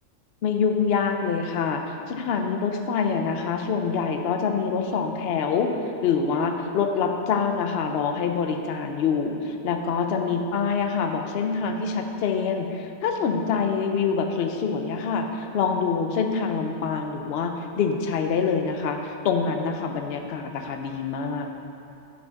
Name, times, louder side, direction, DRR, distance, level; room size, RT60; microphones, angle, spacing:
voice 1, 0.4-5.7 6.0-21.5, left 5 dB, 60° left, 5 dB, 0.8 m, -25 dB
6.0 x 5.8 x 6.3 m, 2.8 s
omnidirectional pair, 1.4 m